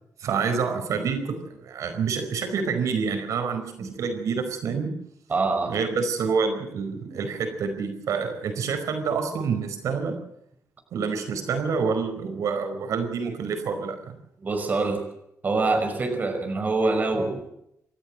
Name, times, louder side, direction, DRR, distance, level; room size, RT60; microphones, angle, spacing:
voice 1, 0.2-4.9 5.7-10.2 10.9-14.1, right 5 dB, 80° right, 7 dB, 4.9 m, -27 dB
voice 2, 5.3-5.8 7.1-7.2 14.4-15.1 15.4-17.4, right 3 dB, 30° right, 5 dB, 5.5 m, -25 dB
28.5 x 14.0 x 7.7 m, 0.76 s
wide cardioid pair, 155°, 5 cm